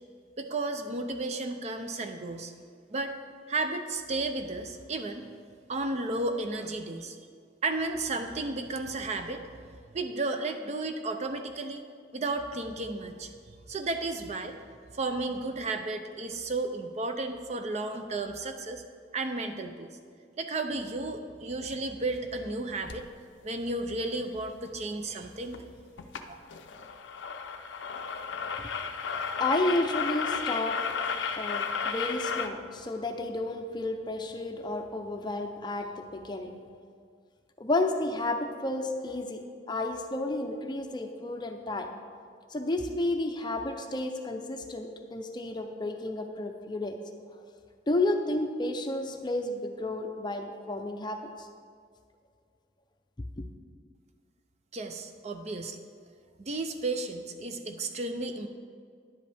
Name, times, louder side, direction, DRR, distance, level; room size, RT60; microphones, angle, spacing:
voice 1, 0.4-2.5 2.9-3.1 3.5-5.3 5.7-7.2 7.6-9.4 9.9-11.8 12.1-13.3 13.7-14.6 14.9-18.8 19.1-19.9 20.4-23.0 23.4-25.6 26.3-26.4 54.7-55.8 56.4-58.5, right 2 dB, 35° right, 7 dB, 0.5 m, -33 dB
sound 1, 22.9-23.1 25.5-25.6 26.0-26.2 26.5-32.5, left 6 dB, 70° left, 0.5 m, -33 dB
voice 2, 29.1-31.0 31.4-36.5 37.6-39.4 39.7-41.9 42.5-47.1 47.9-51.5 53.4-53.5, left 2 dB, 25° left, 4 dB, 0.5 m, -31 dB
10.5 x 8.0 x 3.4 m, 2.1 s
head